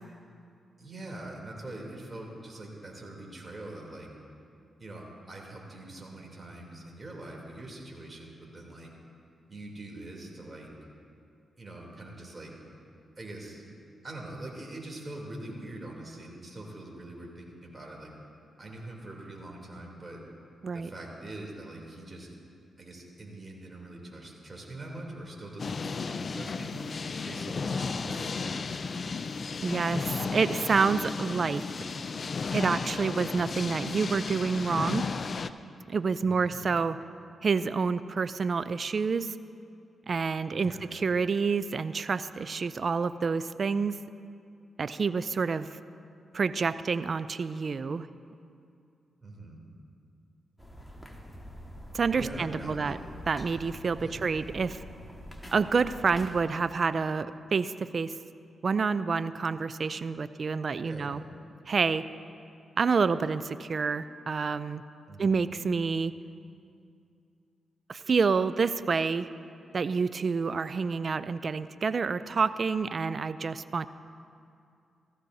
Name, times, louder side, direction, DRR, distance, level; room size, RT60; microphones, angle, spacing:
voice 1, 0.8-4.1 4.8-8.9 9.5-10.7 11.6-12.5 13.2-13.6 14.0-18.1 18.6-20.2 20.7-22.3 22.8-26.8 27.2-29.2 36.2-36.6 40.5-41.0 49.2-49.6 52.1-53.0 54.0-54.4 60.8-61.2 65.1-65.5, right 2 dB, 35° right, -1 dB, 3.2 m, -43 dB
sound 1, 25.6-35.5, left 4 dB, 55° left, 0.4 m, -34 dB
voice 2, 29.6-31.6 32.5-35.1 35.9-37.0 37.4-39.3 40.1-44.0 44.8-45.7 46.3-48.1 51.9-53.0 53.3-54.8 55.5-58.1 58.6-61.2 61.7-62.0 62.8-64.8 65.2-66.1 67.9-69.3 69.7-73.9, right 5 dB, 55° right, 14 dB, 0.4 m, -28 dB
sound 2, 50.6-56.4, equal, 5° left, 1.7 m, -45 dB
15.5 x 14.0 x 2.8 m, 2.5 s
supercardioid pair, 50°, 0 cm